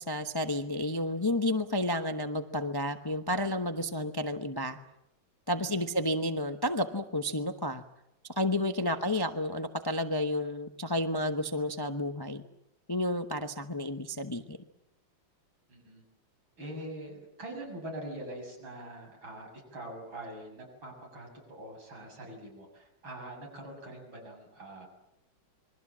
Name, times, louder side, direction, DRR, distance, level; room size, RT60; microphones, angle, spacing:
voice 1, 0.0-4.8 5.5-7.8 8.4-12.4 12.9-14.6, left 1 dB, 20° left, 7 dB, 0.7 m, -31 dB
voice 2, 5.6-5.9 8.8-9.0 15.7-16.0 16.6-24.9, right 1 dB, 75° right, 1 dB, 7.9 m, -44 dB
27.5 x 22.5 x 7.4 m, 0.87 s
omnidirectional pair, 2.2 m